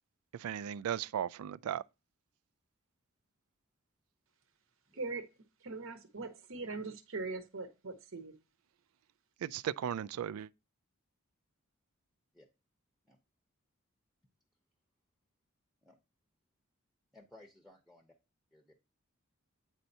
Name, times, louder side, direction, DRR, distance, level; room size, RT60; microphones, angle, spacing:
voice 1, 0.4-1.8 9.4-10.5, right 9 dB, 90° right, 0.3 m, -36 dB
voice 2, 4.9-5.2 5.6-8.3, right 3 dB, 65° right, 1.0 m, -41 dB
voice 3, 17.1-18.1 18.5-18.7, left 2 dB, ahead, 0.7 m, -59 dB
9.0 x 4.3 x 2.7 m
head